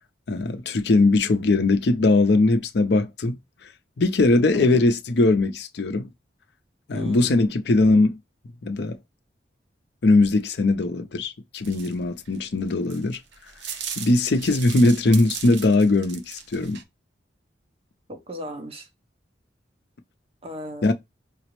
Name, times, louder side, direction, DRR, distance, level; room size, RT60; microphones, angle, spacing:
voice 1, 0.3-3.4 4.0-6.1 6.9-8.2 8.6-9.0 10.0-13.2 14.0-16.8 20.8-20.9, left 2 dB, 60° left, 0.5 m, -20 dB
voice 2, 4.5-4.9 6.9-7.5 18.1-18.9 20.4-20.9, equal, 30° right, 0.8 m, -36 dB
sound 1, 11.6-16.8, right 7 dB, 75° right, 0.6 m, -37 dB
5.0 x 2.0 x 3.0 m
head